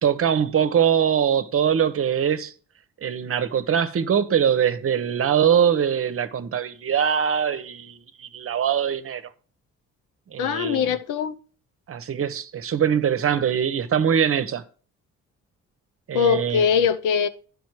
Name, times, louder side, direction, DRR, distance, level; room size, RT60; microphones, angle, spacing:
voice 1, 0.0-2.5 3.0-9.2 10.3-11.0 11.9-14.6 16.1-16.6, right 8 dB, 50° right, 0.9 m, -22 dB
voice 2, 10.4-11.3 16.1-17.3, left 7 dB, 90° left, 0.8 m, -21 dB
10.5 x 5.1 x 4.6 m
cardioid pair, 90°, 30 cm